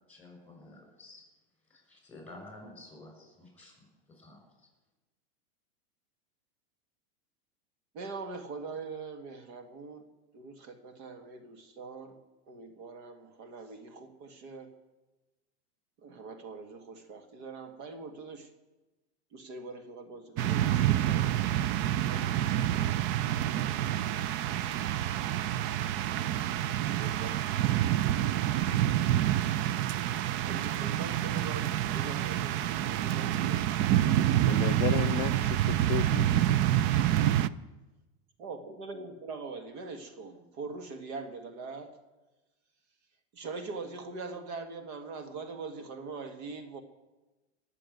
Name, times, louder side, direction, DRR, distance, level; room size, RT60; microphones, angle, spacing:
voice 1, 0.1-1.2 1.7-4.7, left 2 dB, 5° left, 2 dB, 6.3 m, -51 dB
voice 2, 7.9-10.1 10.3-14.8 16.0-18.5 19.3-21.5 22.0-23.1 23.4-24.2 26.8-28.3 30.4-34.1 38.4-42.0 43.3-46.8, right 4 dB, 55° right, 7 dB, 1.8 m, -43 dB
sound 1, 20.4-37.5, right 12 dB, 40° right, 0.5 m, -27 dB
voice 3, 34.5-36.6, left 17 dB, 45° left, 9 dB, 0.5 m, -34 dB
18.5 x 7.0 x 9.2 m, 1.1 s
supercardioid pair, 130°, 32 cm